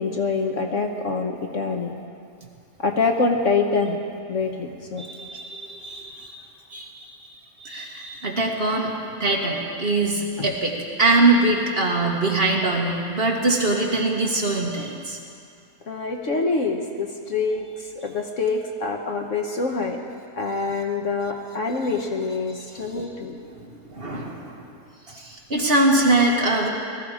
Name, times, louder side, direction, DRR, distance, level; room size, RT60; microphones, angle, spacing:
voice 1, 0.0-1.9 2.8-4.0 4.3-5.0 10.4-10.5 15.9-20.0 20.3-23.4, left 4 dB, 55° left, 3 dB, 1.3 m, -25 dB
voice 2, 5.0-6.4 6.7-7.1 7.6-8.9 9.2-15.2 23.5-24.5 25.1-26.7, right 2 dB, 40° right, -1 dB, 1.8 m, -23 dB
19.5 x 14.0 x 5.0 m, 2.4 s
omnidirectional pair, 1.7 m